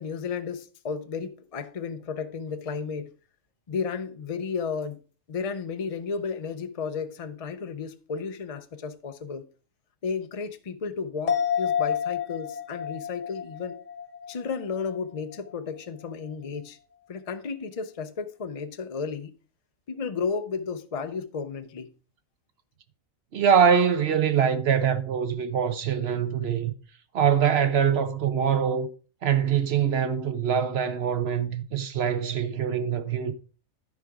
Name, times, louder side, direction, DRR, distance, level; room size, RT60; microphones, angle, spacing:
voice 1, 0.0-3.1 3.7-5.0 5.3-9.5 10.0-13.8 14.3-16.8 17.1-19.3 19.9-21.9, left 5 dB, 50° left, 0.4 m, -33 dB
sound 1, 11.3-15.0 15.3-15.4, left 8 dB, 65° left, 1.5 m, -30 dB
voice 2, 23.3-26.7 27.1-28.9 29.2-33.3, right 7 dB, 55° right, 0.9 m, -23 dB
10.5 x 5.0 x 4.7 m
omnidirectional pair, 1.4 m